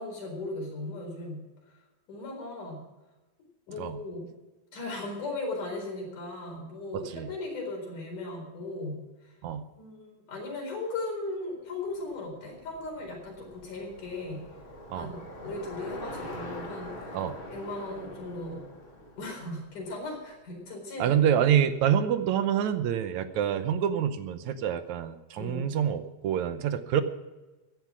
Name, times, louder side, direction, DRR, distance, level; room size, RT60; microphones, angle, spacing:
voice 1, 0.0-1.4 2.1-2.8 3.7-4.3 4.7-9.0 9.8-14.4 14.9-17.2 17.5-18.6 19.2-21.1 25.4-25.7, left 2 dB, 85° left, 1 dB, 5.8 m, -37 dB
voice 2, 6.9-7.3 9.4-9.6 14.9-15.1 17.1-17.3 21.0-27.0, right 9 dB, 75° right, 11 dB, 2.1 m, -27 dB
Bicycle, 12.0-20.3, left 1 dB, 40° left, 3.6 m, -44 dB
15.0 x 11.0 x 6.2 m, 1.1 s
omnidirectional pair, 3.5 m